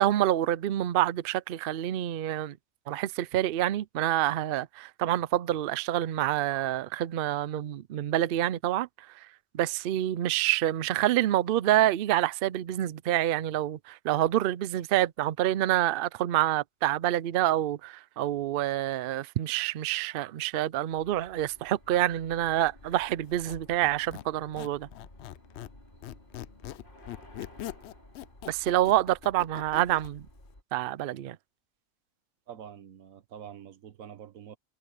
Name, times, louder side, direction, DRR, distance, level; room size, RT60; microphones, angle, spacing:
voice 1, 0.0-2.6 2.9-8.9 9.5-24.9 28.5-30.3 30.7-31.4, right 13 dB, 65° right, 0.6 m, -27 dB
sound 1, 20.9-30.6, left 1 dB, 40° left, 5.5 m, -54 dB
Squeak, 23.2-25.8 26.0-30.1, left 13 dB, 65° left, 0.7 m, -42 dB
voice 2, 32.5-34.6, right 9 dB, 90° right, 1.4 m, -46 dB
omnidirectional pair, 1.4 m